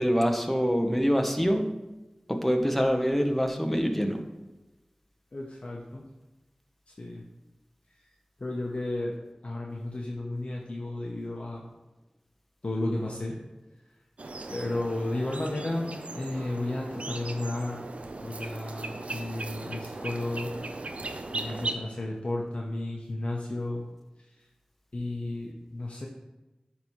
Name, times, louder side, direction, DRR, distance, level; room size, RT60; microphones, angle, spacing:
voice 1, 0.0-1.7 2.3-4.2, equal, 5° left, 3 dB, 0.9 m, -25 dB
voice 2, 5.3-6.0 6.9-7.2 7.9-8.1 8.4-9.2 9.4-11.7 12.6-13.4 14.5-17.9 18.2-20.5 20.8-21.0 21.3-23.8 24.2-24.5 24.9-26.1, left 2 dB, 55° left, -2 dB, 0.7 m, -33 dB
sound 1, 14.2-21.7, right 2 dB, 65° right, 0.5 m, -38 dB
9.5 x 3.6 x 3.0 m, 1.1 s
wide cardioid pair, 45°, 2 cm